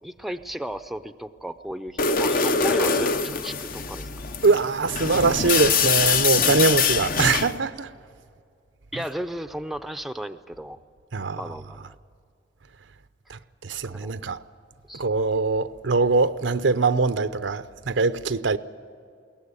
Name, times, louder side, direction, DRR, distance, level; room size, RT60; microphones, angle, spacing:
voice 1, 0.0-4.1 8.9-10.8 11.3-11.9 13.8-14.1 14.9-15.0, right 1 dB, ahead, 0.5 m, -34 dB
sound 1, 2.0-7.6, left 5 dB, 50° left, 0.8 m, -24 dB
voice 2, 4.4-7.9 11.1-11.5 13.3-14.4 14.9-18.6, right 4 dB, 85° right, 0.7 m, -23 dB
22.0 x 17.5 x 9.7 m
head